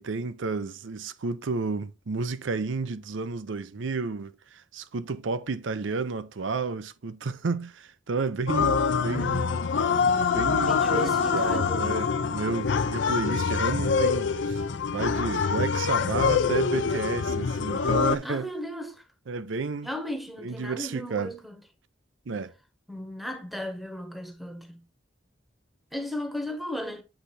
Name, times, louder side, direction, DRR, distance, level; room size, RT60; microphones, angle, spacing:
voice 1, 0.0-9.6 10.3-14.6 14.9-18.5 19.3-19.9 20.4-21.3 22.3-22.5, right 4 dB, 75° right, 0.6 m, -31 dB
sound 1, 8.5-18.2, left 5 dB, 65° left, 0.5 m, -25 dB
voice 2, 10.6-12.0 18.2-19.0 19.8-21.6 22.9-24.8 25.9-27.0, equal, ahead, 1.0 m, -36 dB
8.0 x 3.4 x 4.1 m
head